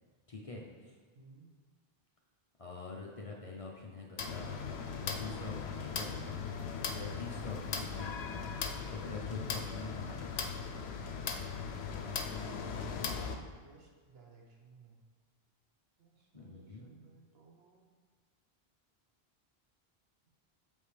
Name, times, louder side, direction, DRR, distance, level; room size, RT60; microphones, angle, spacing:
voice 1, 0.3-0.9 2.6-4.5 5.0-6.5 6.9-8.5 8.9-10.5 16.3-16.9, left 3 dB, 40° left, -2 dB, 0.6 m, -45 dB
voice 2, 1.1-1.5 12.8-15.0 16.0-17.9, right 4 dB, 75° right, 0 dB, 1.2 m, -60 dB
sound 1, 4.2-13.4, left 5 dB, 85° left, 0.9 m, -38 dB
6.8 x 5.4 x 3.3 m, 1.4 s
omnidirectional pair, 1.1 m